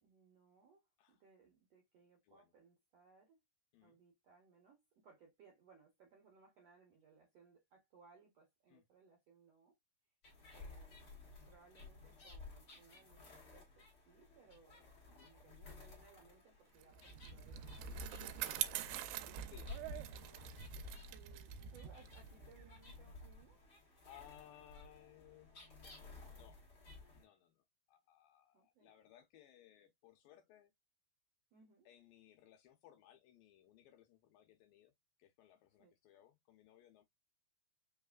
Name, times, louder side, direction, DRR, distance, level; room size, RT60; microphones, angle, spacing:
voice 1, 0.0-3.4 3.8-9.8 10.5-11.1 11.4-14.8 15.2-18.8 19.2-19.5 21.1-23.6 28.5-28.9 31.5-31.9 35.8-35.9, right 5 dB, 65° right, 1.6 m, -66 dB
sound 1, 10.2-27.2, left 3 dB, 40° left, 1.5 m, -55 dB
Bicycle, 16.8-23.5, right 11 dB, 90° right, 2.6 m, -45 dB
voice 2, 19.5-20.3 24.1-26.6 27.1-30.7 31.9-34.9 35.2-37.0, left 11 dB, 75° left, 2.3 m, -63 dB
5.6 x 3.2 x 2.3 m
omnidirectional pair, 4.5 m